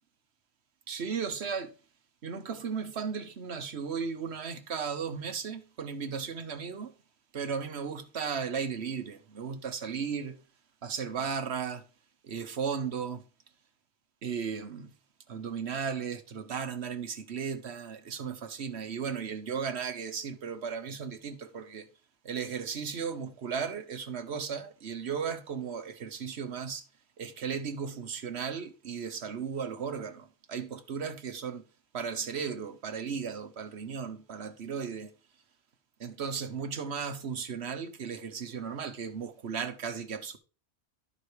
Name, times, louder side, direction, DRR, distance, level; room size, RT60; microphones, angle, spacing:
voice 1, 0.9-1.7 2.2-6.9 7.3-10.4 10.8-11.8 12.2-13.2 14.2-14.9 15.3-21.9 22.2-26.8 27.2-31.6 31.9-35.1 36.0-40.4, right 6 dB, 80° right, 1.3 m, -35 dB
12.0 x 4.9 x 4.8 m
omnidirectional pair, 1.1 m